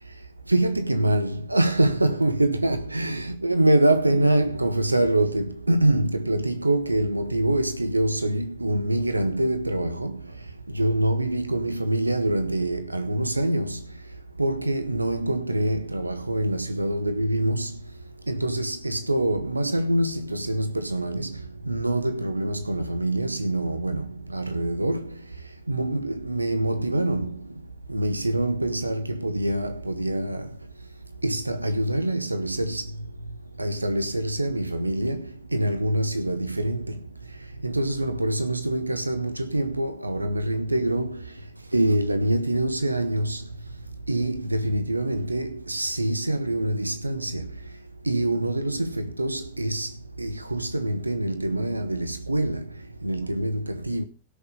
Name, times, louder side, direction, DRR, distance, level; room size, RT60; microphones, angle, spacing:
voice 1, 0.5-10.2 10.7-13.8 14.4-17.7 18.3-21.4 21.7-25.1 25.7-27.4 27.9-30.5 31.2-32.8 33.6-35.2 35.5-36.9 37.6-41.2 41.7-43.4 44.1-47.5 48.1-49.9 50.2-52.6 53.0-54.0, right 1 dB, 85° right, 0.9 m, -25 dB
17.0 x 6.7 x 5.4 m
figure-of-eight pair, 90°, 0 cm